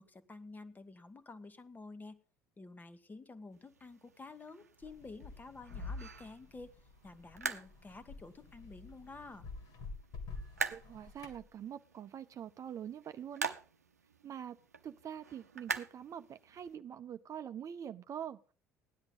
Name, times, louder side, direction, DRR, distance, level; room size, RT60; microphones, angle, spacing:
voice 1, 0.0-2.2 2.6-6.7 7.0-9.5, left 3 dB, 20° left, 11 dB, 1.4 m, -50 dB
sound 1, 3.5-16.7, right 6 dB, 85° right, 0.8 m, -45 dB
sound 2, 4.8-11.4, left 3 dB, 55° left, 3.2 m, -48 dB
voice 2, 10.7-13.5 14.2-14.6 14.8-18.4, right 9 dB, 40° right, 11 dB, 0.7 m, -44 dB
16.5 x 10.5 x 3.9 m, 0.36 s
figure-of-eight pair, 60°, 8 cm